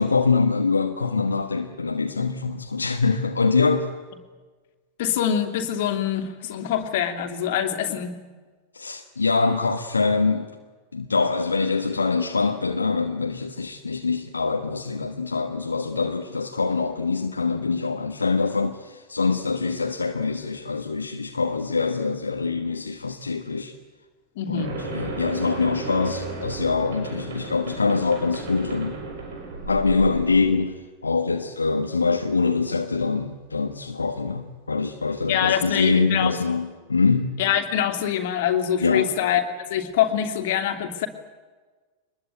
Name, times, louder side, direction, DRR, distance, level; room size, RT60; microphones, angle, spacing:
voice 1, 0.0-3.9 8.7-10.5 10.9-23.7 24.5-29.0 29.7-37.4 38.8-39.1, left 4 dB, 75° left, 1.4 m, -24 dB
voice 2, 5.0-8.1 24.4-24.8 35.3-36.4 37.4-39.4 39.7-41.1, left 10 dB, 55° left, 2.9 m, -24 dB
sound 1, 24.6-30.6, right 3 dB, 60° right, 6.7 m, -34 dB
24.0 x 21.0 x 9.2 m
figure-of-eight pair, 90°, 0 cm